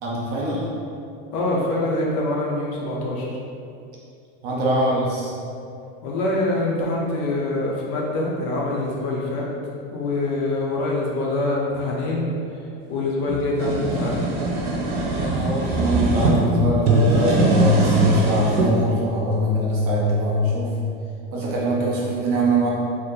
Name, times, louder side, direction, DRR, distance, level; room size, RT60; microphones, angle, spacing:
voice 1, 0.0-0.7 4.4-5.3 15.0-20.7 21.3-22.7, equal, 30° right, -5 dB, 0.4 m, -22 dB
voice 2, 1.3-3.3 6.0-9.5 9.9-12.3 12.9-14.2, left 2 dB, 40° left, -4 dB, 0.5 m, -24 dB
sound 1, 13.3-16.3 16.8-18.7, right 2 dB, 75° right, 0.8 m, -22 dB
2.7 x 2.5 x 3.6 m, 2.5 s
cardioid pair, 180°, 30 cm